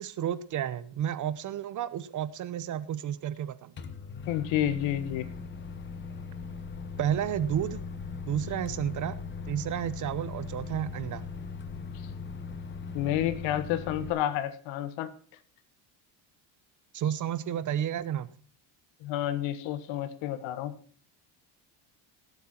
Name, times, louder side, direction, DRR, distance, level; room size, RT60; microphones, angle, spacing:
voice 1, 0.0-3.7 7.0-7.8 8.3-9.2 9.5-11.2 16.9-18.3, right 10 dB, 40° right, 16 dB, 0.8 m, -31 dB
Microwave oven, 3.8-14.1, left 5 dB, 25° left, 1.1 m, -39 dB
voice 2, 4.3-5.3 12.9-15.1 19.0-20.7, left 12 dB, 80° left, 13 dB, 1.6 m, -30 dB
18.0 x 8.1 x 4.4 m, 0.43 s
cardioid pair, 145°, 45 cm